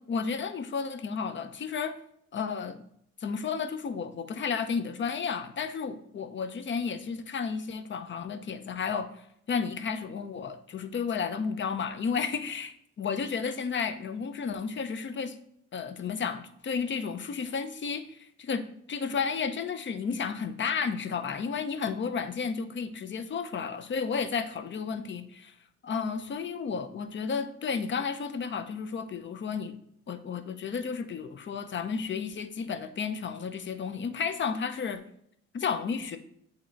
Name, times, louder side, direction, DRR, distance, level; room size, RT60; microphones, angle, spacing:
voice 1, 0.1-2.0 2.3-2.8 3.2-15.4 15.7-25.5 25.8-29.8 30.1-35.0 35.5-36.2, left 6 dB, 40° left, 9 dB, 0.6 m, -32 dB
7.6 x 2.9 x 4.4 m, 0.71 s
cardioid pair, 90°, 30 cm